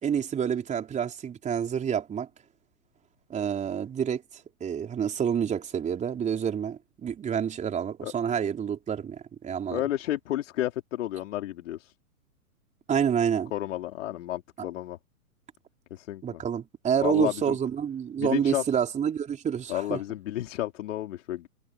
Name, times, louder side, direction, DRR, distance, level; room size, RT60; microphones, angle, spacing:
voice 1, 0.0-2.3 3.3-4.2 4.6-9.8 12.9-13.5 16.2-20.0, right 8 dB, 15° right, 4.3 m, -28 dB
voice 2, 9.7-11.9 13.5-15.0 15.9-16.4 17.0-17.6 18.2-18.6 19.7-21.5, left 14 dB, 55° left, 4.2 m, -31 dB
hypercardioid pair, 125°, 44 cm